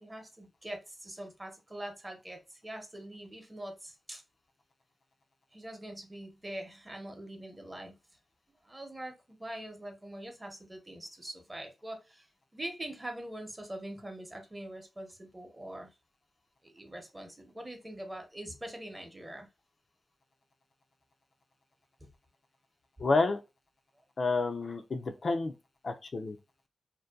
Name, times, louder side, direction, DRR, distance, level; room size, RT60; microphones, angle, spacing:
voice 1, 0.0-4.2 5.5-7.9 8.6-15.9 16.6-19.5 22.0-22.1 23.0-23.1 24.0-24.1, right 1 dB, 20° right, 0.7 m, -43 dB
voice 2, 23.0-23.4 24.2-25.5 25.8-26.4, left 3 dB, 55° left, 0.4 m, -29 dB
2.6 x 2.1 x 2.3 m
cardioid pair, 70°, 0 cm